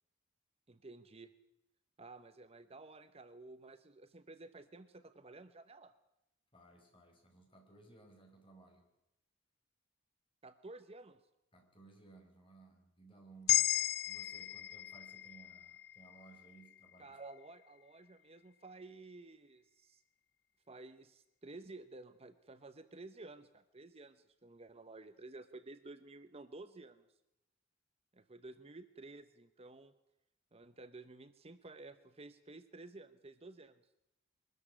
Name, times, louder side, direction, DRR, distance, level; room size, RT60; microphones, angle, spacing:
voice 1, 0.7-1.3 2.0-5.9 10.4-11.2 17.0-20.0 20.7-27.0 28.1-29.9 30.5-33.8, right 2 dB, 30° right, 11 dB, 0.9 m, -53 dB
voice 2, 6.5-8.9 11.5-13.7 14.1-17.2, right 3 dB, 25° left, 3 dB, 5.2 m, -60 dB
sound 1, 13.5-17.7, left 14 dB, 55° left, 0.8 m, -36 dB
22.5 x 13.5 x 9.9 m, 0.89 s
head